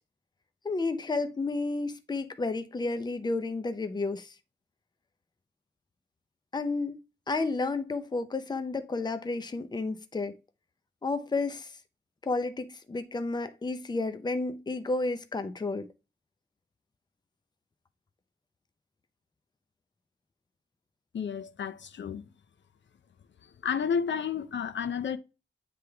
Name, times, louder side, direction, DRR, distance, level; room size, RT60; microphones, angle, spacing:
voice 1, 0.6-4.3 6.5-10.4 11.0-11.7 12.2-15.9, left 3 dB, 25° left, 0.6 m, -31 dB
voice 2, 21.1-22.2 23.6-25.2, left 7 dB, 80° left, 0.6 m, -31 dB
9.5 x 3.3 x 3.4 m
wide cardioid pair, 155°, 19 cm